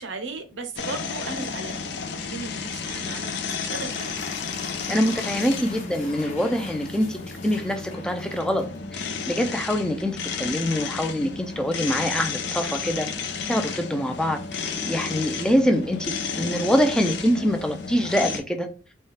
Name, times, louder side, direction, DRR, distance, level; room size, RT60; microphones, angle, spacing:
voice 1, 0.0-4.2, right 3 dB, 70° right, 0.8 m, -36 dB
sound 1, 0.8-18.4, left 5 dB, 65° left, 0.6 m, -32 dB
sound 2, 3.5-9.1, left 4 dB, 35° left, 1.0 m, -43 dB
voice 2, 4.9-8.6 8.9-13.1 13.5-18.7, equal, 5° left, 0.4 m, -25 dB
4.2 x 2.3 x 3.2 m
head